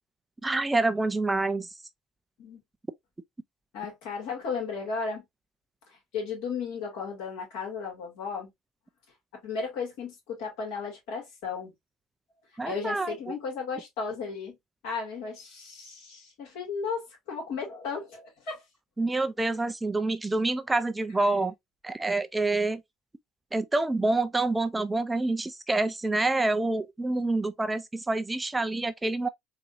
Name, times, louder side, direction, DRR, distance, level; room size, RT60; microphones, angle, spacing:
voice 1, 0.4-1.7 12.6-13.3 19.0-21.5 21.8-22.8 23.5-29.3, right 2 dB, 15° right, 0.4 m, -27 dB
voice 2, 3.7-5.2 5.9-8.5 9.4-11.7 12.6-14.5 14.8-18.6, left 5 dB, 70° left, 2.3 m, -35 dB
4.0 x 2.6 x 2.5 m
hypercardioid pair, 70°, 0 cm